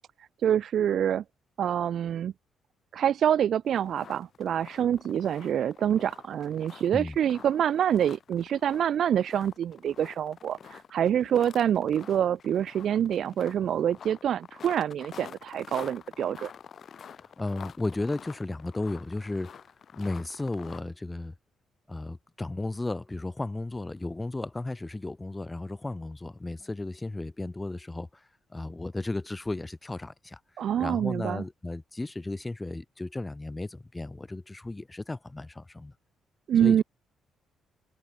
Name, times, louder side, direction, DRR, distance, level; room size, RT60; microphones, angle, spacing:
voice 1, 0.4-1.2 1.6-2.3 2.9-16.5 30.6-31.4 36.5-36.8, right 9 dB, 65° right, 0.6 m, -26 dB
sound 1, 3.6-20.8, left 7 dB, 55° left, 7.8 m, -48 dB
voice 2, 17.2-19.6 20.0-21.3 21.9-28.2 28.5-30.4 30.8-35.9 36.6-36.8, left 2 dB, 15° left, 0.7 m, -34 dB
open air
cardioid pair, 90°, 0 cm